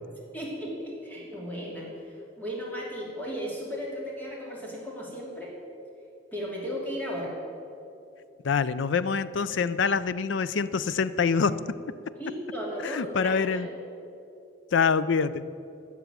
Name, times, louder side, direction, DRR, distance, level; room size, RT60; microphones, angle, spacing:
voice 1, 0.3-5.5 6.3-7.3 12.1-13.7, equal, 10° left, -4 dB, 2.6 m, -35 dB
voice 2, 8.4-11.8 12.8-13.7 14.7-15.5, left 5 dB, 75° left, 16 dB, 0.4 m, -25 dB
12.0 x 6.9 x 9.1 m, 2.6 s
head